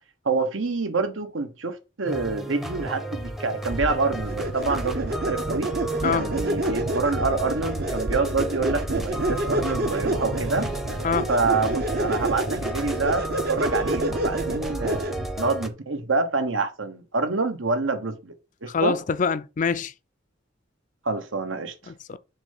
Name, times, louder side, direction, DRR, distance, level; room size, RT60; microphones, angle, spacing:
voice 1, 0.2-5.7 6.1-10.7 11.3-18.3 18.6-18.9 21.0-21.9, right 3 dB, 75° right, 1.2 m, -27 dB
sound 1, 2.0-15.7, right 1 dB, ahead, 0.7 m, -33 dB
sound 2, 3.7-15.4, right 1 dB, 50° right, 0.9 m, -29 dB
voice 2, 6.0-6.3 11.0-11.3 18.7-19.9 21.9-22.2, left 5 dB, 40° left, 0.4 m, -25 dB
7.1 x 3.3 x 5.4 m
head